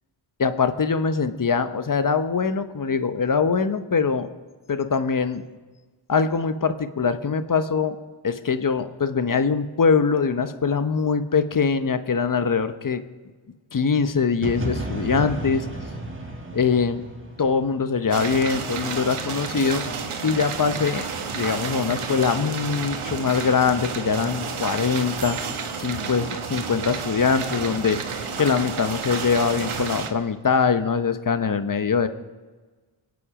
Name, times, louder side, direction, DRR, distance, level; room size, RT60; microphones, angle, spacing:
voice 1, 0.4-4.3 4.7-5.4 6.1-8.0 8.2-13.0 13.7-15.7 16.5-17.0 17.4-19.8 20.2-21.1 21.3-25.4 25.8-32.1, left 5 dB, 40° left, 10 dB, 1.1 m, -23 dB
sound 1, 14.4-18.3, right 1 dB, 25° right, 2.3 m, -32 dB
huge typing pool, 18.1-30.1, right 5 dB, 80° right, 1.5 m, -31 dB
24.5 x 8.6 x 4.9 m, 1.3 s
cardioid pair, 70°, 49 cm